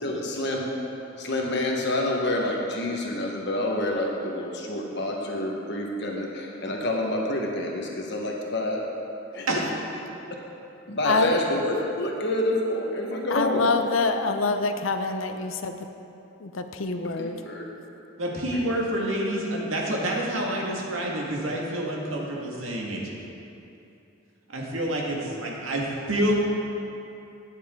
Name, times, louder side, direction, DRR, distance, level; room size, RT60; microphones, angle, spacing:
voice 1, 0.0-0.7 1.2-8.8 9.3-9.6 10.9-13.7 17.2-17.6 18.5-18.7, left 1 dB, 60° left, 0 dB, 1.2 m, -28 dB
voice 2, 11.0-11.4 13.3-15.8 16.4-17.4, left 3 dB, 85° left, 7 dB, 0.7 m, -26 dB
voice 3, 18.2-23.0 24.5-26.3, right 1 dB, 85° right, -2 dB, 1.9 m, -28 dB
12.5 x 9.4 x 3.7 m, 2.8 s
head